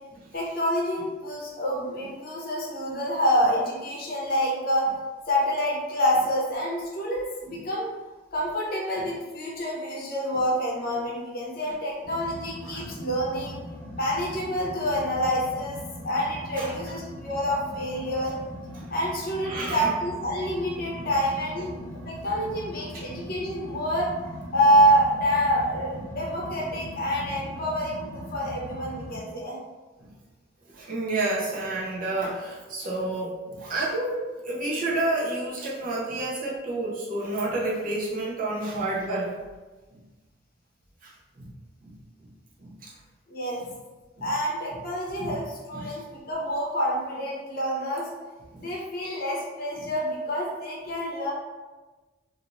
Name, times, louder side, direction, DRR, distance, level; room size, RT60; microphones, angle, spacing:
voice 1, 0.3-4.9 5.3-7.9 8.3-13.6 14.0-15.8 16.0-18.4 18.9-24.1 24.5-29.6 43.3-43.6 44.2-48.1 48.6-51.3, equal, 50° left, -3 dB, 0.7 m, -27 dB
sound 1, 12.0-29.2, left 1 dB, 15° left, 1.2 m, -40 dB
voice 2, 19.4-19.9 30.7-39.3 41.0-41.1 41.4-41.5 41.8-41.9 42.6-42.9 44.2-44.3 45.2-45.4 45.7-46.0 48.5-48.7, right 2 dB, 45° right, -5 dB, 0.7 m, -30 dB
2.6 x 2.4 x 2.9 m, 1.3 s
head